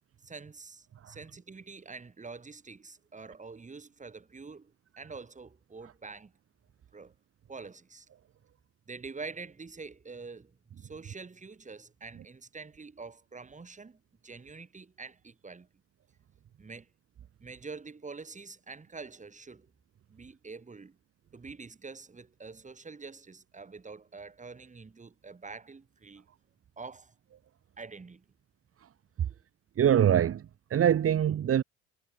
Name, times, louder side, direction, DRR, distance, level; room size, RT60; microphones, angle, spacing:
voice 1, 0.2-4.7 5.0-6.3 6.9-7.1 7.5-8.1 8.9-15.7 16.6-16.9 17.4-19.7 20.1-21.0 21.3-26.3 26.8-27.1 27.8-28.2 29.2-29.4, right 4 dB, 20° right, 5.4 m, -46 dB
voice 2, 29.8-31.6, right 9 dB, 40° right, 3.2 m, -24 dB
figure-of-eight pair, 60°, 33 cm